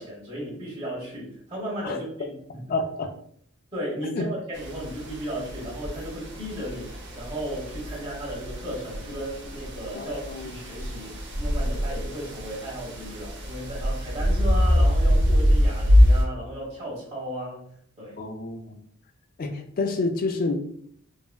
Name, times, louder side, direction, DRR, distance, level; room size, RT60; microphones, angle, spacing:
voice 1, 0.0-2.7 3.7-17.7 18.0-18.2, equal, 30° right, 1.1 m, -35 dB
voice 2, 2.7-3.1 4.1-4.3 9.9-10.5 18.2-18.8 19.4-20.6, left 3 dB, 40° left, 0.3 m, -28 dB
sound 1, 4.5-16.2, equal, 55° right, 0.6 m, -24 dB
3.4 x 2.1 x 2.3 m
head